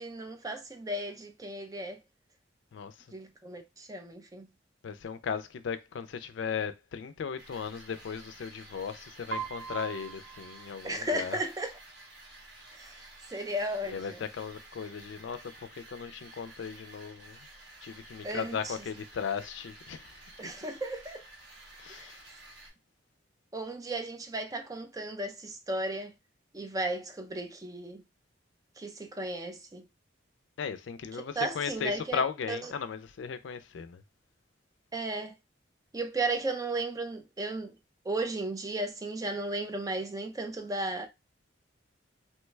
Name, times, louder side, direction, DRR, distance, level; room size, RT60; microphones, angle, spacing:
voice 1, 0.0-2.0 3.1-4.5 10.8-11.7 12.7-13.0 13.3-14.2 18.2-18.7 20.4-21.2 21.9-22.1 23.5-26.1 26.5-28.0 28.8-29.8 31.4-32.2 32.5-32.6 34.9-35.3 35.9-37.7 38.0-41.1, right 2 dB, 20° right, 0.4 m, -35 dB
voice 2, 2.7-3.1 4.8-11.4 13.8-17.5 17.8-20.2 21.8-22.3 30.6-34.0, left 6 dB, 70° left, 0.4 m, -37 dB
sound 1, 7.4-22.7, right 2 dB, 55° right, 1.9 m, -52 dB
Piano, 9.3-11.3, right 7 dB, 75° right, 0.9 m, -41 dB
3.0 x 2.2 x 3.1 m
head